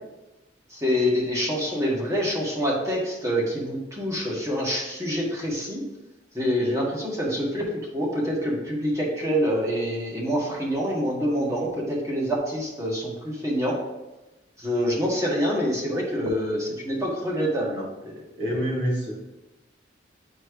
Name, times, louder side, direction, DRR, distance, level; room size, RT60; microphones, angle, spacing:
voice 1, 0.7-5.8 6.3-13.8 14.6-18.1, equal, 15° right, -3 dB, 1.6 m, -26 dB
voice 2, 18.4-19.1, equal, 75° right, -4 dB, 2.3 m, -26 dB
9.8 x 4.4 x 3.2 m, 1.0 s
head